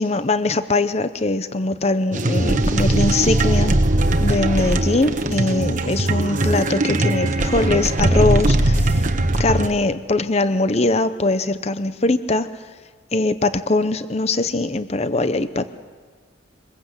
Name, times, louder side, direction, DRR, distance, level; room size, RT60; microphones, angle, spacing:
voice 1, 0.0-3.8 4.2-9.1 9.4-12.6 13.1-15.7, left 2 dB, 30° left, 12 dB, 0.7 m, -21 dB
sound 1, 2.1-9.7, right 1 dB, 40° right, 1.1 m, -19 dB
24.0 x 21.5 x 8.0 m, 1.5 s
head